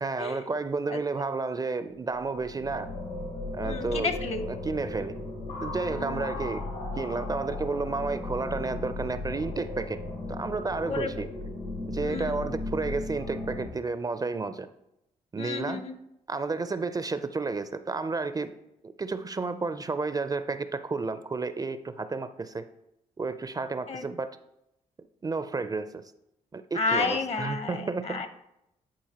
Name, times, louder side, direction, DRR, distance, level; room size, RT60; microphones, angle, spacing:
voice 1, 0.0-2.9 3.5-4.1 4.5-5.1 5.6-6.6 7.0-10.0 10.3-11.3 11.9-14.7 15.3-15.8 16.3-18.5 18.8-22.7 23.2-24.4 25.2-26.0 26.5-28.3, right 3 dB, 25° right, 11 dB, 0.4 m, -31 dB
sound 1, 2.1-13.7, left 2 dB, 80° left, 2.6 m, -36 dB
voice 2, 3.6-4.5 5.9-6.4 10.8-11.3 12.0-12.5 15.4-16.0 23.9-24.0 26.7-28.3, left 4 dB, 45° left, 9 dB, 0.9 m, -32 dB
10.5 x 4.4 x 2.9 m, 0.84 s
supercardioid pair, 60°, 15 cm